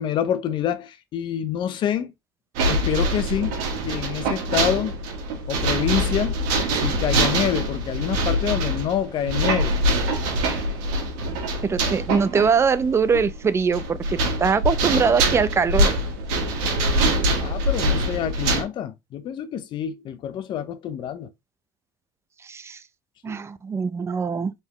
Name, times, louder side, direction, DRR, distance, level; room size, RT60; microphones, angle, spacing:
voice 1, 0.0-2.1 2.7-3.6 3.8-5.0 5.5-6.4 6.7-9.8 17.4-21.3 23.2-23.4, left 9 dB, 50° left, 0.7 m, -27 dB
sound 1, 2.6-18.6, right 1 dB, 75° right, 1.5 m, -24 dB
voice 2, 11.7-15.9 22.4-22.8 23.2-24.5, right 5 dB, 25° right, 0.5 m, -22 dB
4.1 x 3.6 x 3.0 m
supercardioid pair, 85°, 10 cm